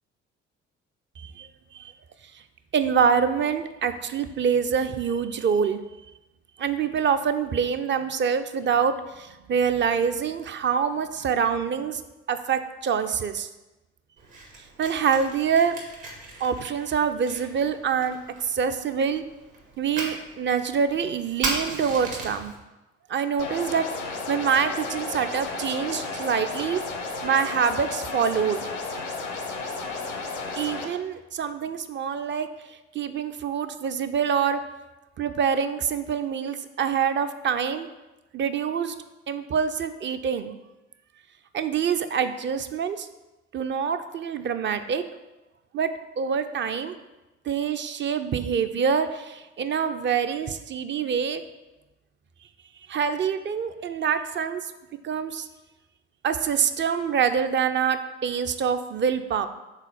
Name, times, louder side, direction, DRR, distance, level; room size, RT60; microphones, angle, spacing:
voice 1, 1.2-1.9 2.7-5.8 6.6-12.0 12.3-13.5 14.8-15.8 16.4-19.2 19.8-22.5 23.1-23.9 24.3-26.8 27.2-28.7 30.6-34.6 35.2-37.9 38.3-38.9 39.3-40.5 41.5-43.1 43.5-45.0 45.7-45.9 46.2-47.0 47.5-51.4 52.9-54.6 55.0-55.5 56.2-59.5, right 7 dB, 35° right, 10 dB, 0.5 m, -25 dB
Fire, 14.2-22.5, right 3 dB, 65° right, 1.7 m, -37 dB
sound 1, 23.4-30.9, left 3 dB, 85° left, 0.8 m, -33 dB
4.8 x 3.9 x 5.7 m, 1.0 s
figure-of-eight pair, 50°, 35 cm